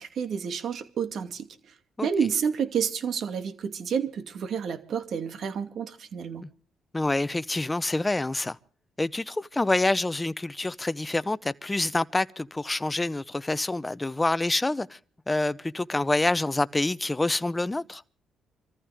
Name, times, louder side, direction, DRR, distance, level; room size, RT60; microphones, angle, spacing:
voice 1, 0.0-1.5 2.0-6.4, right 7 dB, 65° right, 2.5 m, -29 dB
voice 2, 6.9-8.6 9.0-15.0 15.3-18.0, left 2 dB, 15° left, 0.8 m, -27 dB
26.0 x 14.5 x 3.5 m
cardioid pair, 90°, 0 cm